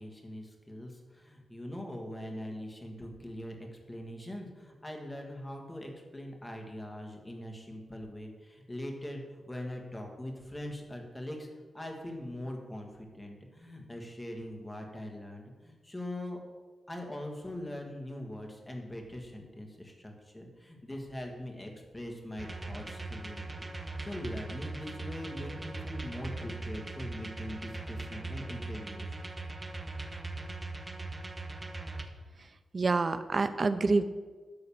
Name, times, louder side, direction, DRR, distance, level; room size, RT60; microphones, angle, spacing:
voice 1, 0.0-11.5 11.7-16.4 16.9-29.1, left 1 dB, 15° left, 2 dB, 1.6 m, -42 dB
sound 1, 22.4-32.0, right 2 dB, 20° right, 0.8 m, -40 dB
voice 2, 32.4-34.0, right 3 dB, 40° right, 11 dB, 0.6 m, -28 dB
12.0 x 4.0 x 7.0 m, 1.4 s
wide cardioid pair, 115°, 0 cm